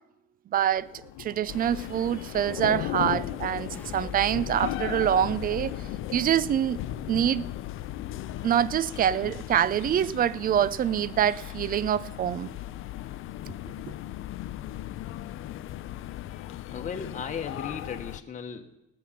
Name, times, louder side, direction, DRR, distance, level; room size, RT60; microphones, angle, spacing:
voice 1, 0.5-0.9 1.2-5.8 6.1-6.8 7.1-7.4 8.4-12.5, right 10 dB, 30° right, 0.4 m, -25 dB
Thunder / Rain, 0.7-10.7 11.0-11.3, left 12 dB, 65° left, 1.1 m, -37 dB
sound 1, 1.5-18.2, left 13 dB, 45° left, 0.6 m, -39 dB
sound 2, 3.7-9.9 10.3-10.9, left 4 dB, 5° left, 1.3 m, -45 dB
voice 2, 16.1-18.8, left 6 dB, 25° left, 1.2 m, -37 dB
18.5 x 7.6 x 5.8 m
supercardioid pair, 110°, 29 cm